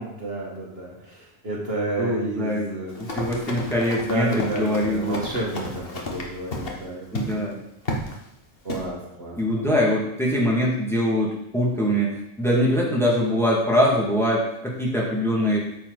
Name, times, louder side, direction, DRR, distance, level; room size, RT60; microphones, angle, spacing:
voice 1, 0.0-3.2 4.0-7.5 8.6-9.7, right 2 dB, 50° right, -3 dB, 2.1 m, -31 dB
voice 2, 2.0-2.7 3.0-5.2 7.1-7.6 9.4-15.6, equal, ahead, -4 dB, 2.0 m, -23 dB
Run, 2.9-6.8 7.1-7.4 7.9-8.2 8.7-8.9, left 1 dB, 50° left, 1.6 m, -32 dB
8.8 x 7.6 x 4.0 m, 0.82 s
omnidirectional pair, 1.3 m